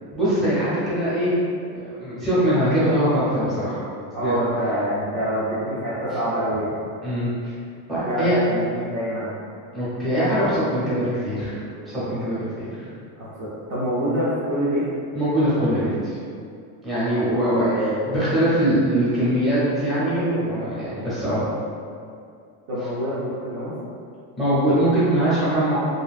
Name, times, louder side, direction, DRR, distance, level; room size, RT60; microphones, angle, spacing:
voice 1, 0.1-1.3 1.7-3.8 4.2-4.4 7.0-7.3 7.9-8.4 9.7-11.6 11.9-12.7 15.1-16.1 16.8-21.4 24.4-25.8, right 1 dB, ahead, -12 dB, 0.7 m, -22 dB
voice 2, 4.1-6.8 8.0-9.4 13.2-14.9 17.6-18.0 22.7-23.7, equal, 40° right, -9 dB, 0.5 m, -26 dB
2.7 x 2.7 x 2.3 m, 2.4 s
cardioid pair, 160°, 48 cm